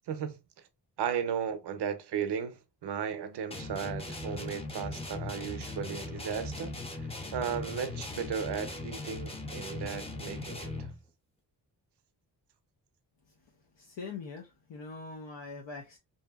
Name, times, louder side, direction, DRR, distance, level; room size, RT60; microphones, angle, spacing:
voice 1, 0.1-0.4 1.0-10.7, right 7 dB, 65° right, 0.6 m, -35 dB
sound 1, 3.5-11.0, left 2 dB, 15° left, 0.6 m, -39 dB
voice 2, 13.8-16.0, left 4 dB, 75° left, 0.7 m, -42 dB
2.6 x 2.6 x 2.2 m
cardioid pair, 55°, 44 cm